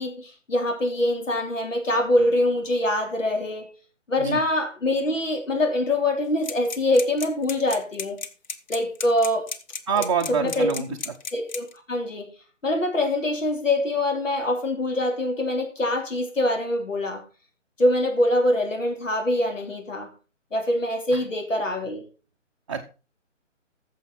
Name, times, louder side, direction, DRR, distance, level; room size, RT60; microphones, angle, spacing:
voice 1, 0.0-3.7 4.1-8.2 8.7-9.5 9.9-10.0 10.3-10.7 11.3-12.3 12.6-17.2 17.8-20.1 20.5-22.0, left 1 dB, 80° left, 3 dB, 3.4 m, -24 dB
sound 1, 6.4-11.8, left 5 dB, 35° left, 1.0 m, -33 dB
voice 2, 9.9-11.1 21.1-21.2 22.7-22.9, right 6 dB, 25° right, 1 dB, 0.7 m, -26 dB
14.5 x 7.0 x 4.0 m, 0.34 s
figure-of-eight pair, 150°, 38 cm